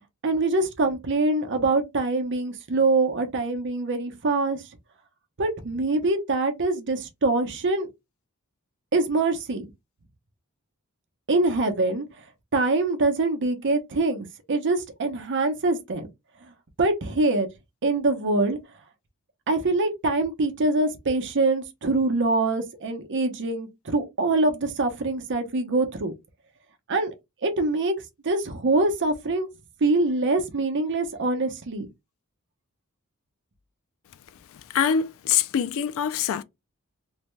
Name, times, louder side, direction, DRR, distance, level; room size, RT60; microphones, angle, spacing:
voice 1, 0.2-4.6 5.4-7.9 8.9-9.6 11.3-12.0 12.5-16.1 16.8-17.5 17.8-18.6 19.5-26.1 26.9-27.1 27.4-28.0 28.2-29.5 29.8-31.9, right 2 dB, 55° right, 0.7 m, -24 dB
voice 2, 34.7-36.4, left 8 dB, 65° left, 0.3 m, -24 dB
2.6 x 2.2 x 3.0 m
head